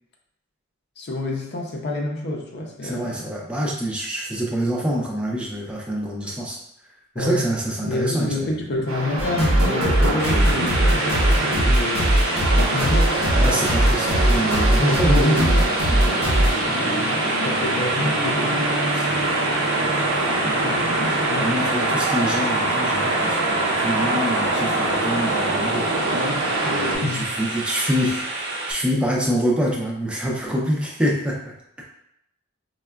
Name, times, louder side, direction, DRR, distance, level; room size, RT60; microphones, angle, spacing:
voice 1, 1.0-3.3 7.2-7.5 7.8-12.1 12.6-13.2 14.8-18.8 20.4-21.6 27.0-27.3, left 1 dB, 50° left, 0 dB, 0.5 m, -28 dB
voice 2, 2.8-6.6 7.1-8.5 11.3-11.4 13.3-15.5 16.7-16.9 18.9-19.3 20.3-20.5 21.4-25.9 26.7-31.9, equal, 5° right, -3 dB, 0.4 m, -26 dB
sound 1, 8.9-27.0, right 2 dB, 90° right, 0.7 m, -24 dB
sound 2, 9.2-16.5, right 1 dB, 30° left, 0.8 m, -20 dB
sound 3, 10.2-28.7, right 2 dB, 55° right, 0.6 m, -30 dB
4.6 x 2.1 x 2.2 m, 0.79 s
head